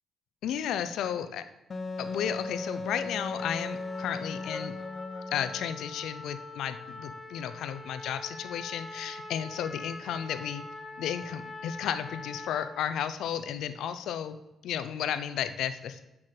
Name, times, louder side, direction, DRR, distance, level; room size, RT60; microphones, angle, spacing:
voice 1, 0.4-1.4 2.0-4.7 5.3-10.6 11.0-14.4 14.6-16.0, left 9 dB, 80° left, 11 dB, 0.6 m, -33 dB
Wind instrument woodwind instrument, 1.7-5.8, left 3 dB, 40° left, 0.6 m, -37 dB
Trumpet, 3.4-12.9, left 2 dB, 25° left, 1.2 m, -44 dB
6.4 x 5.8 x 6.6 m, 0.93 s
cardioid pair, 90°, 0 cm